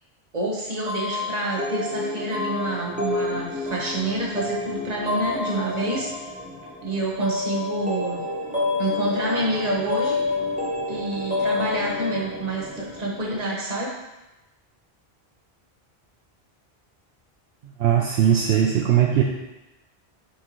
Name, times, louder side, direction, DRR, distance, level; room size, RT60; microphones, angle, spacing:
voice 1, 0.3-6.1 6.8-8.2 8.8-10.2 10.9-13.9 18.3-18.5, right 2 dB, 40° right, -4 dB, 1.3 m, -28 dB
sound 1, 0.9-13.4, left 3 dB, 5° right, 1.1 m, -29 dB
voice 2, 17.8-19.2, right 10 dB, 70° right, -1 dB, 0.8 m, -19 dB
7.1 x 4.5 x 3.0 m, 1.0 s
omnidirectional pair, 1.1 m